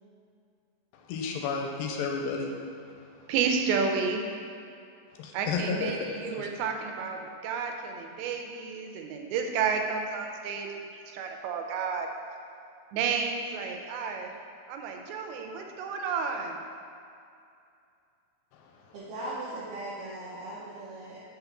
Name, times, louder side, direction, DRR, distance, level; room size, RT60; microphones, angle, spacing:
voice 1, 0.9-2.6 5.2-6.5 18.5-18.7, left 5 dB, 80° left, 2 dB, 2.2 m, -32 dB
voice 2, 3.3-4.2 5.3-10.7 10.9-12.1 12.9-14.3 14.7-16.6, right 5 dB, 90° right, 3 dB, 2.6 m, -31 dB
voice 3, 18.9-21.2, right 1 dB, 70° right, -7 dB, 2.2 m, -38 dB
7.0 x 3.7 x 5.8 m, 2.5 s
omnidirectional pair, 4.3 m